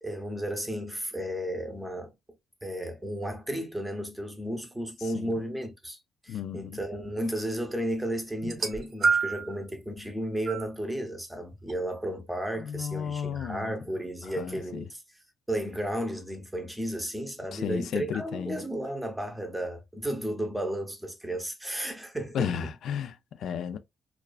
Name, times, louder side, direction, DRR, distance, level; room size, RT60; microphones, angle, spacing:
voice 1, 0.0-2.1 2.6-6.0 6.2-15.0 15.5-22.7, right 1 dB, 5° right, 0.7 m, -33 dB
voice 2, 6.3-6.8 12.6-13.7 14.4-14.9 17.5-18.7 22.3-23.8, left 8 dB, 70° left, 0.4 m, -33 dB
sound 1, 8.4-9.6 10.4-10.7 11.7-11.8, right 4 dB, 50° right, 0.7 m, -27 dB
2.3 x 2.3 x 2.3 m
cardioid pair, 90°, 0 cm